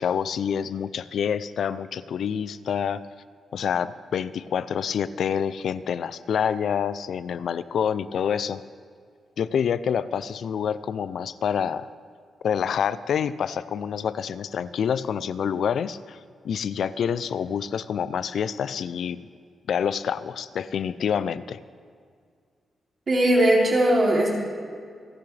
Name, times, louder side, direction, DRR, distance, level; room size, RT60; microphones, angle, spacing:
voice 1, 0.0-3.1 3.5-8.6 9.4-11.9 12.4-16.2 16.4-19.2 19.7-21.6, left 7 dB, 60° left, 15 dB, 0.4 m, -27 dB
voice 2, 23.1-24.3, right 1 dB, 35° right, -3 dB, 3.0 m, -19 dB
28.0 x 10.5 x 3.3 m, 2.1 s
wide cardioid pair, 170°, 0 cm